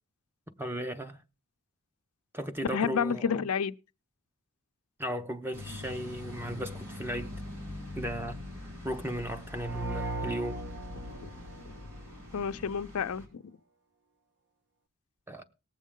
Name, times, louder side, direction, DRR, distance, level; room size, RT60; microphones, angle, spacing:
voice 1, 0.6-1.2 2.3-3.5 5.0-7.3 8.0-8.4 8.8-10.6 15.3-15.4, equal, 10° right, 0.8 m, -36 dB
voice 2, 2.7-3.7 11.1-11.3 11.7-11.8 12.3-13.4, left 6 dB, 85° left, 0.5 m, -30 dB
sound 1, 5.5-13.3, left 2 dB, 90° right, 4.2 m, -43 dB
sound 2, 9.6-12.4, right 1 dB, 50° right, 0.8 m, -38 dB
19.0 x 7.3 x 3.7 m
head